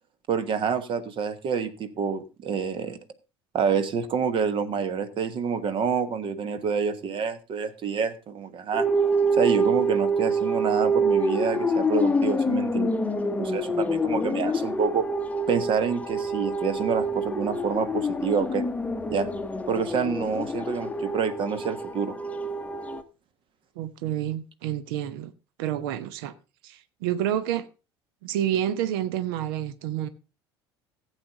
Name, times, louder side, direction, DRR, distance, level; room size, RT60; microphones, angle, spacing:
voice 1, 0.3-3.0 3.5-8.9 9.4-12.9 13.4-15.1 15.5-18.6 19.1-19.3 19.7-22.1, right 6 dB, 40° right, 1.4 m, -27 dB
sound 1, 8.7-23.0, right 1 dB, 10° left, 1.0 m, -26 dB
voice 2, 23.8-25.3 25.6-26.3 26.6-27.7 28.2-30.1, right 11 dB, 60° right, 0.9 m, -29 dB
16.0 x 8.4 x 3.8 m
figure-of-eight pair, 65°, 14 cm